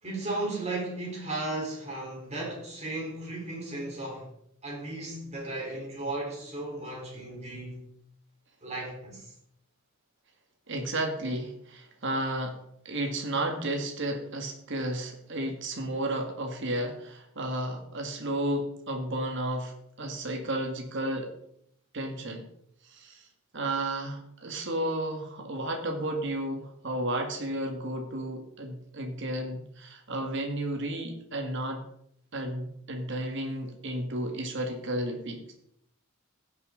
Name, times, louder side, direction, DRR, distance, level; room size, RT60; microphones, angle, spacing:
voice 1, 0.0-4.3 4.6-7.8 8.6-9.3, right 2 dB, 35° right, 4.0 m, -35 dB
voice 2, 10.7-12.6 12.9-21.3 21.9-22.5 22.8-23.3 23.5-31.8 32.3-35.4, right 1 dB, 60° right, 1.9 m, -32 dB
16.0 x 7.0 x 3.9 m
head